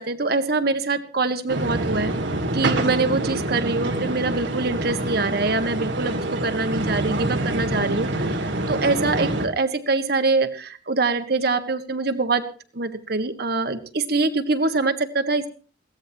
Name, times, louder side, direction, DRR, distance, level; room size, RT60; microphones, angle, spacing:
voice 1, 0.0-2.1 2.5-12.5 12.7-15.5, right 3 dB, 60° right, 8 dB, 1.7 m, -24 dB
sound 1, 1.5-9.5, right 1 dB, 80° right, 2.3 m, -26 dB
22.0 x 17.0 x 2.9 m, 0.38 s
head